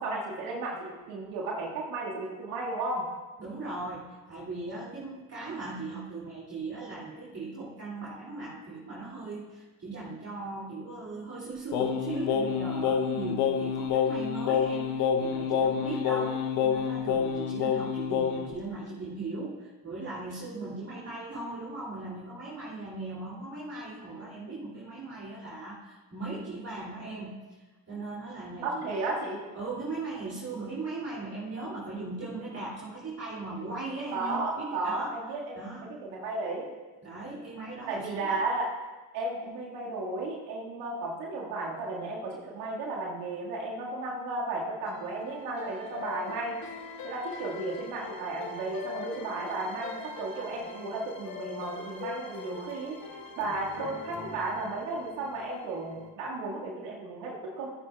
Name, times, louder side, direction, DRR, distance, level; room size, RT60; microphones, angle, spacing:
voice 1, 0.0-3.0 28.6-29.4 34.1-36.7 37.9-38.7 39.1-46.6 47.0-53.0 53.4-57.7, right 2 dB, 85° right, -2 dB, 1.9 m, -34 dB
voice 2, 3.4-27.4 27.9-29.0 29.5-35.1 35.5-35.9 37.0-38.4, right 3 dB, 30° right, -6 dB, 2.6 m, -38 dB
Singing, 11.7-18.5, left 7 dB, 80° left, 0.9 m, -28 dB
sound 1, 44.8-56.1, left 5 dB, 45° left, 1.6 m, -43 dB
15.0 x 9.5 x 2.3 m, 1.2 s
hypercardioid pair, 55°, 47 cm